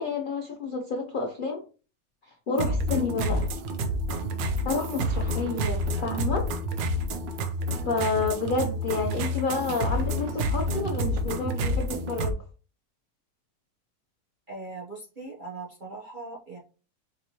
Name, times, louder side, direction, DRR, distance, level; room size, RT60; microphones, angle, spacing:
voice 1, 0.0-1.6 2.3-3.5 4.6-6.5 7.8-12.3, left 4 dB, 80° left, 1 dB, 0.4 m, -29 dB
sound 1, 2.6-12.3, equal, 80° right, 1.3 m, -29 dB
voice 2, 14.5-16.6, right 3 dB, 50° right, -4 dB, 0.5 m, -40 dB
5.1 x 3.0 x 2.8 m, 0.35 s
omnidirectional pair, 1.9 m